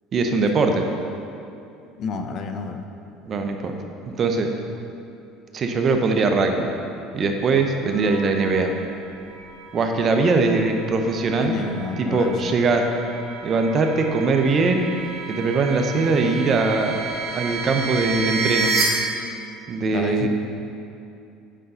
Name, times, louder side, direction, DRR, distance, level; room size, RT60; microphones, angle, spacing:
voice 1, 0.1-0.9 3.2-3.8 4.2-4.5 5.5-6.7 7.1-8.7 9.7-11.6 12.0-12.9 13.4-14.9 15.3-17.0 17.3-18.8 19.7-20.3, right 3 dB, 40° right, 4 dB, 0.8 m, -21 dB
voice 2, 2.0-2.8 11.4-12.5 19.9-20.3, left 5 dB, 50° left, 6 dB, 0.6 m, -29 dB
sound 1, 7.9-18.8, right 4 dB, 80° right, 1.8 m, -32 dB
8.5 x 5.4 x 3.9 m, 2.6 s
supercardioid pair, 90°, 0 cm